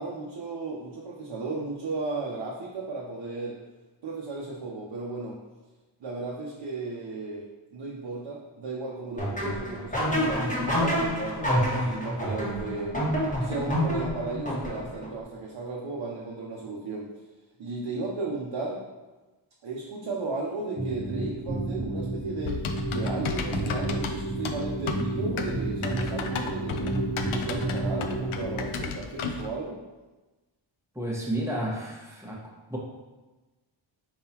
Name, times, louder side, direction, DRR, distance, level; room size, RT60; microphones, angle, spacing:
voice 1, 0.0-3.6 4.0-5.4 6.0-13.0 13.4-17.1 17.6-18.8 19.6-27.0 27.3-29.8, right 3 dB, 60° right, -3 dB, 0.8 m, -35 dB
sound 1, 9.2-15.1, equal, 15° left, 1.3 m, -28 dB
sound 2, 20.8-28.7, right 2 dB, 35° right, 1.0 m, -31 dB
Typing, 22.4-29.5, left 5 dB, 80° left, 0.6 m, -34 dB
voice 2, 30.9-32.4 32.7-32.8, right 1 dB, 5° right, -4 dB, 1.2 m, -31 dB
4.9 x 3.7 x 2.9 m, 1.2 s
cardioid pair, 65°, 48 cm